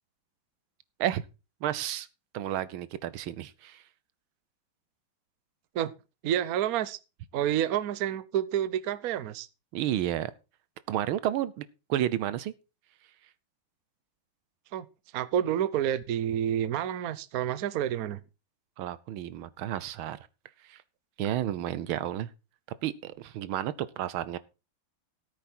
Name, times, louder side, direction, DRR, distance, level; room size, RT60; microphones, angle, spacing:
voice 1, 1.6-2.1 2.3-3.8 9.7-10.3 10.9-12.5 18.8-20.2 20.7-20.8 21.2-22.3 22.8-24.4, right 12 dB, 85° right, 1.6 m, -31 dB
voice 2, 6.2-7.0 7.3-9.5 14.7-14.9 15.1-18.2, right 10 dB, 60° right, 1.0 m, -29 dB
14.0 x 8.4 x 4.4 m
omnidirectional pair, 2.2 m